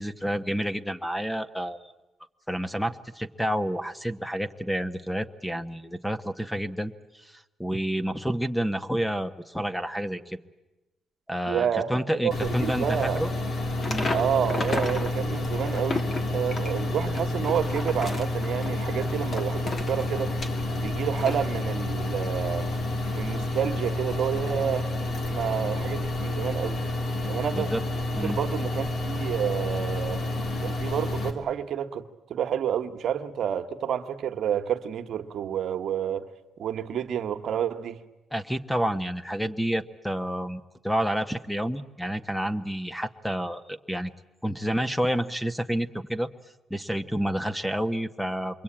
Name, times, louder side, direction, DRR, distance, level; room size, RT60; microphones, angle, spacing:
voice 1, 0.0-1.9 2.5-10.4 11.3-13.3 13.9-14.1 27.5-27.8 28.2-28.4 38.3-44.1 44.4-46.3 46.7-48.6, equal, 5° left, 1.2 m, -29 dB
voice 2, 11.5-11.9 12.2-13.2 14.1-20.4 20.7-22.7 23.1-24.9 25.3-26.9 27.3-27.7 28.1-30.2 30.6-32.0 32.3-36.3 36.6-38.0, right 9 dB, 65° right, 1.3 m, -29 dB
sound 1, 12.3-31.3, left 2 dB, 60° left, 3.3 m, -29 dB
sound 2, 13.8-15.1 15.4-20.8 21.2-21.4, left 3 dB, 40° left, 2.7 m, -33 dB
27.0 x 23.0 x 8.8 m
cardioid pair, 90°, 0 cm